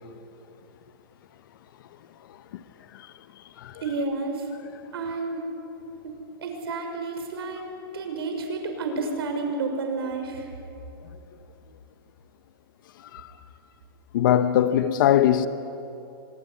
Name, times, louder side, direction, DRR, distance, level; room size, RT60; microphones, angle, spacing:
voice 1, 3.8-4.5 4.9-5.4 6.0-6.1 6.4-7.6 7.9-10.5, right 3 dB, 75° right, 6.3 m, -30 dB
voice 2, 14.1-15.5, left 11 dB, 55° left, 1.1 m, -21 dB
24.5 x 22.0 x 9.7 m
hypercardioid pair, 160°, 13 cm